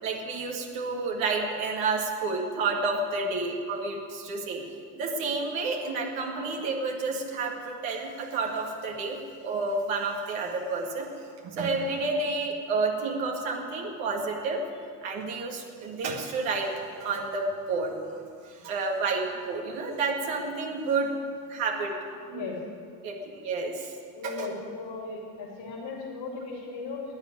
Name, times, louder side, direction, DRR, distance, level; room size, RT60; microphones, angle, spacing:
voice 1, 0.0-4.6 4.9-11.1 11.4-14.6 15.0-16.7 17.0-17.9 18.4-21.1 21.5-22.5 23.0-23.9 24.2-24.5, right 3 dB, 75° right, 0 dB, 2.2 m, -30 dB
voice 2, 24.2-27.0, left 4 dB, 60° left, -4 dB, 3.2 m, -37 dB
12.5 x 9.7 x 9.6 m, 2.3 s
hypercardioid pair, 60°, 46 cm